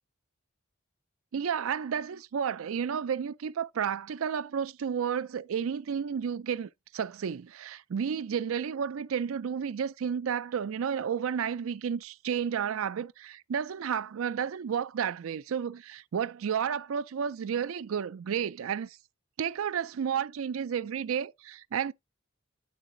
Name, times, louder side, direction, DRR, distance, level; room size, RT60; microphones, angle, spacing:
voice 1, 1.3-19.0 19.4-21.9, right 7 dB, 85° right, 0.4 m, -32 dB
10.0 x 3.9 x 3.8 m
head